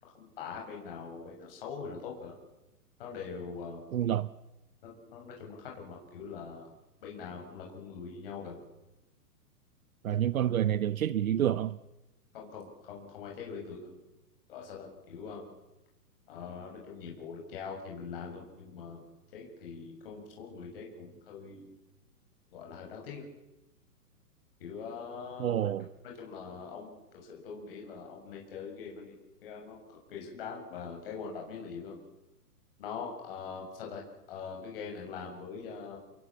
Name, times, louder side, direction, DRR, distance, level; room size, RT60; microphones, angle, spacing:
voice 1, 0.0-2.3 3.0-3.8 4.8-6.7 7.0-8.6 12.3-13.9 14.5-15.5 16.3-19.0 19.3-21.7 22.5-23.2 24.6-25.7 26.0-29.2 29.4-32.0 32.8-34.0 34.3-36.0, left 5 dB, 35° left, 6.8 m, -43 dB
voice 2, 3.9-4.3 10.0-11.8 25.4-25.9, right 10 dB, 60° right, 0.9 m, -28 dB
30.0 x 22.5 x 7.3 m
hypercardioid pair, 175°, 47 cm